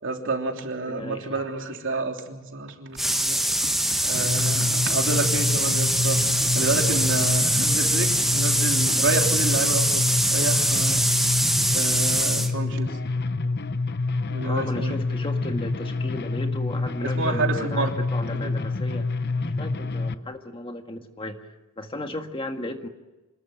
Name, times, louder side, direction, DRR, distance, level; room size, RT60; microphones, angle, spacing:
voice 1, 0.0-6.2 6.5-11.1 11.7-13.0 14.3-15.0 17.0-17.9 18.4-18.5, right 3 dB, 60° right, 3 dB, 3.2 m, -29 dB
voice 2, 0.9-1.4 14.4-19.1 19.4-22.9, left 1 dB, 25° left, 5 dB, 1.7 m, -35 dB
sound 1, 3.0-12.5, right 1 dB, ahead, 1.6 m, -23 dB
sound 2, 4.1-20.2, left 3 dB, 50° left, 0.9 m, -27 dB
26.5 x 21.0 x 9.1 m, 1.1 s
head